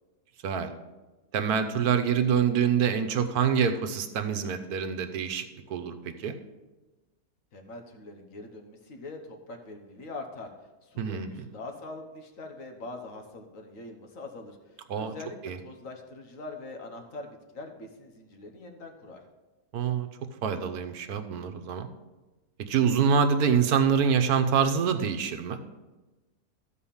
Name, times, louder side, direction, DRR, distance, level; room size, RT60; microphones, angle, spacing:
voice 1, 1.3-5.4 5.7-6.3 11.0-11.5 14.9-15.1 15.4-15.6 19.7-20.1 20.4-21.9 22.7-25.6, right 7 dB, 80° right, 7 dB, 1.3 m, -26 dB
voice 2, 7.5-10.5 10.8-19.2, left 2 dB, 60° left, 4 dB, 1.6 m, -43 dB
13.0 x 4.8 x 7.1 m, 1.1 s
omnidirectional pair, 1.6 m